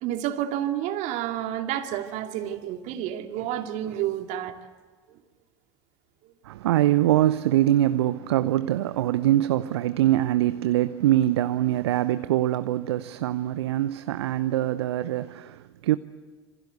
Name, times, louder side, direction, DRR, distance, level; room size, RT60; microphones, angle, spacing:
voice 1, 0.0-4.5 5.1-5.2 14.7-14.8, right 11 dB, 55° right, 2.4 m, -30 dB
voice 2, 6.4-16.0, right 13 dB, 70° right, 0.7 m, -23 dB
27.0 x 26.0 x 8.2 m
figure-of-eight pair, 70°, 14 cm